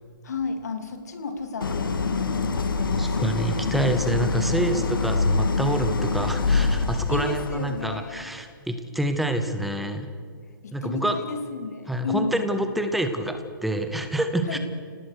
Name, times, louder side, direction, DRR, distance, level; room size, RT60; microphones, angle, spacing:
voice 1, 0.2-3.2 6.8-8.3 10.6-12.4 14.4-14.6, left 4 dB, 50° left, 7 dB, 2.9 m, -32 dB
Idling, 1.6-7.7, left 3 dB, 80° left, 2.3 m, -25 dB
voice 2, 3.0-10.1 10.7-11.1 11.9-14.6, right 1 dB, ahead, 7 dB, 0.7 m, -27 dB
30.0 x 18.5 x 6.5 m, 2.1 s
hypercardioid pair, 180°, 11 cm